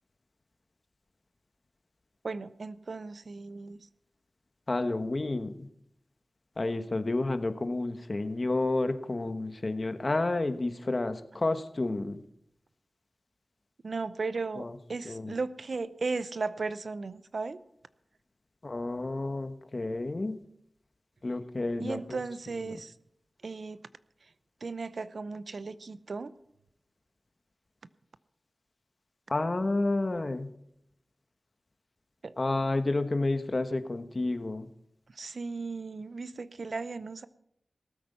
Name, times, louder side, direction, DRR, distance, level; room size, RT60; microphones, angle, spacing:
voice 1, 2.2-3.8 13.8-17.6 21.8-22.9 23.4-23.8 24.6-26.3 32.2-32.3 35.1-37.3, right 4 dB, 75° right, 15 dB, 0.6 m, -36 dB
voice 2, 4.7-5.7 6.6-12.2 14.6-14.8 15.0-15.3 18.6-20.4 21.2-22.2 22.5-22.7 29.3-30.5 32.4-34.7, left 2 dB, 45° left, 10 dB, 1.2 m, -30 dB
19.0 x 8.7 x 5.5 m, 0.78 s
cardioid pair, 50°, 0 cm